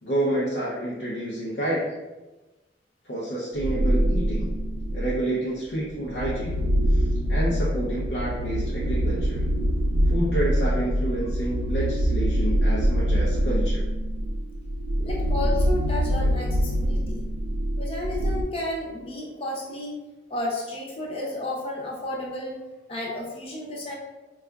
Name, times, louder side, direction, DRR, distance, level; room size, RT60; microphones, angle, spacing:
voice 1, 0.0-1.9 3.1-4.5 4.9-6.6 6.9-7.0 7.3-9.4 10.1-13.8, right 1 dB, 80° left, -7 dB, 0.6 m, -29 dB
sound 1, 3.6-5.3 5.9-18.4, equal, 80° right, 0.3 m, -24 dB
voice 2, 15.0-17.2 17.8-20.0 20.3-22.6 22.9-23.9, left 1 dB, 35° left, -3 dB, 0.6 m, -32 dB
4.6 x 2.3 x 2.2 m, 1.2 s
head